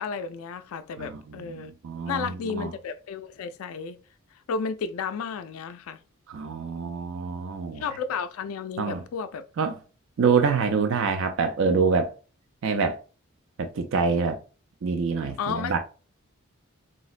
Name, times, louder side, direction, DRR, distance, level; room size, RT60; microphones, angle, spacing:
voice 1, 0.0-1.7 2.1-4.0 4.5-6.0 7.8-9.4 15.4-15.8, left 5 dB, 80° left, 0.3 m, -32 dB
voice 2, 1.0-2.7 6.3-7.8 8.8-9.0 9.6-9.8 10.2-12.1 12.6-13.0 13.6-14.4 14.8-15.8, right 5 dB, 65° right, 0.4 m, -26 dB
3.8 x 2.0 x 2.4 m
head